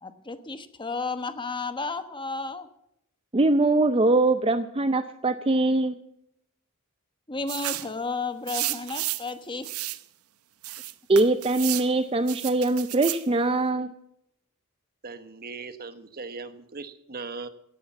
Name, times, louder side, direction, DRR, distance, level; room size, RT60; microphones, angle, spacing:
voice 1, 0.0-2.7 7.3-9.7, left 3 dB, 20° left, 10 dB, 1.1 m, -33 dB
voice 2, 3.3-6.0 11.1-13.9, right 2 dB, 25° right, 10 dB, 0.6 m, -22 dB
sound 1, 7.5-7.9 8.5-9.3 9.6-10.0 10.6-11.9 12.3-13.2, right 16 dB, 85° right, 0.7 m, -32 dB
voice 3, 15.0-17.5, right 4 dB, 45° right, 11 dB, 1.2 m, -39 dB
17.0 x 10.0 x 7.3 m, 0.76 s
head